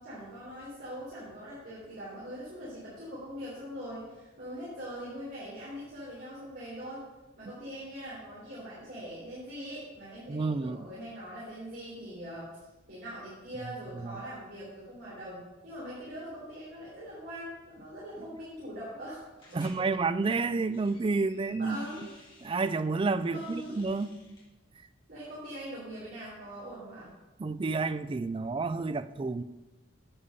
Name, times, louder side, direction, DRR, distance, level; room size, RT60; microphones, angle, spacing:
voice 1, 0.0-7.0 7.4-12.5 12.9-19.2 19.5-19.8 21.6-22.0 23.2-23.8 25.1-27.1, equal, 50° right, 3.7 m, -42 dB
voice 2, 10.3-10.8 14.0-14.2 19.5-21.8 22.4-24.2 27.4-29.4, right 3 dB, 25° right, 0.3 m, -30 dB
sound 1, 19.4-19.8 20.5-22.7 23.2-24.5, left 2 dB, 25° left, 2.8 m, -55 dB
9.9 x 8.5 x 5.4 m
head